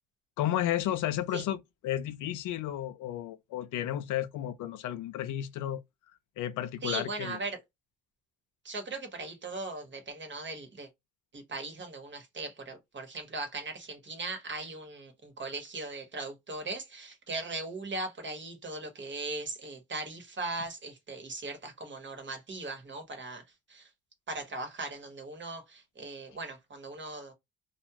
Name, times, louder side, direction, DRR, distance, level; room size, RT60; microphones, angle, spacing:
voice 1, 0.4-5.8 6.4-7.4, left 12 dB, 85° left, 0.5 m, -32 dB
voice 2, 6.8-7.6 8.6-10.9 11.3-23.4 23.7-23.9 24.3-27.3, right 3 dB, 40° right, 1.2 m, -39 dB
2.3 x 2.3 x 2.8 m
cardioid pair, 90°, 30 cm